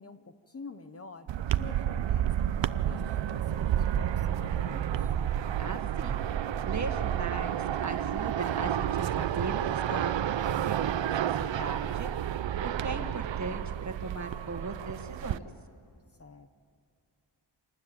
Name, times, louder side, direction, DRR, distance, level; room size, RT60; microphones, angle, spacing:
voice 1, 0.0-5.1 16.2-16.6, left 4 dB, 30° left, 9 dB, 0.8 m, -48 dB
sound 1, 1.3-15.4, right 10 dB, 75° right, 0.7 m, -30 dB
sound 2, 4.4-10.9, left 1 dB, 70° left, 6.4 m, -57 dB
voice 2, 5.6-6.2 6.6-15.5, right 3 dB, 40° right, 6 dB, 1.7 m, -38 dB
26.5 x 19.5 x 8.8 m, 2.5 s
wide cardioid pair, 165°, 44 cm